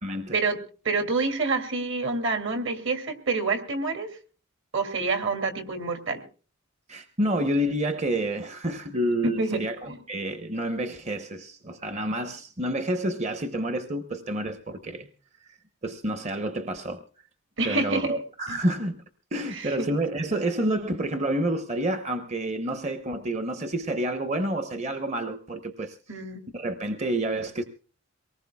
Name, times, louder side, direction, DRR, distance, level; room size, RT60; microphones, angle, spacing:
voice 1, 0.0-0.4 6.9-15.1 15.4-15.6 15.8-17.0 17.6-19.0 19.3-26.2 26.5-27.6, right 1 dB, 30° right, 0.8 m, -29 dB
voice 2, 0.8-4.1 4.7-6.2 9.2-10.0 17.6-18.1 18.5-18.6 19.5-19.9 26.1-26.4, right 3 dB, 60° right, 2.5 m, -27 dB
24.0 x 19.0 x 2.3 m
head